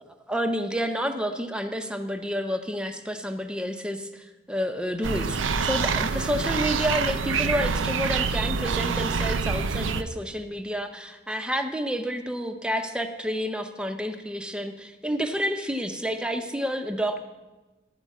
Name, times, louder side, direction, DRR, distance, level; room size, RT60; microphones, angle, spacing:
voice 1, 0.3-17.2, equal, 5° right, 7 dB, 0.5 m, -29 dB
sound 1, 5.0-10.0, right 5 dB, 90° right, 0.5 m, -26 dB
12.0 x 4.5 x 8.3 m, 1.1 s
head